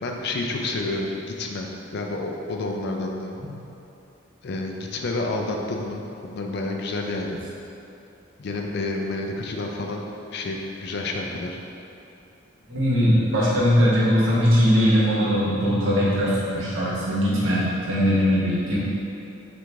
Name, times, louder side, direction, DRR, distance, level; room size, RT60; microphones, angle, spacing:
voice 1, 0.0-3.4 4.4-7.4 8.4-10.0 10.3-11.6, left 2 dB, 55° left, 1 dB, 0.4 m, -29 dB
voice 2, 12.7-18.8, equal, 75° right, -7 dB, 1.1 m, -20 dB
4.6 x 2.5 x 3.3 m, 2.8 s
head